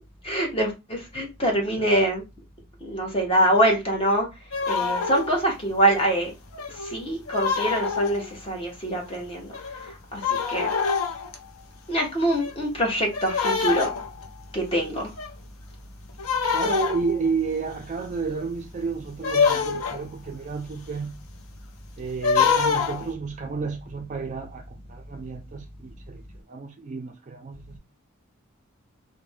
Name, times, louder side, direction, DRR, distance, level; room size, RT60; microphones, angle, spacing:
voice 1, 0.2-2.2 2.8-4.3 4.7-6.3 6.9-9.5 10.1-10.7 11.9-13.9 14.5-15.1, right 1 dB, 25° left, 0.9 m, -24 dB
voice 2, 1.6-2.1 16.5-21.2 22.0-26.2 26.5-27.8, right 5 dB, 35° right, 0.3 m, -31 dB
sound 1, 4.5-5.4 6.0-6.1 6.5-8.3 9.1-9.2 9.5-9.9 10.2-11.4 12.3-12.7 13.1-14.3 15.2-15.3 16.2-17.3 19.2-20.0 22.1-23.1, left 5 dB, 75° left, 0.5 m, -25 dB
2.5 x 2.1 x 3.2 m
head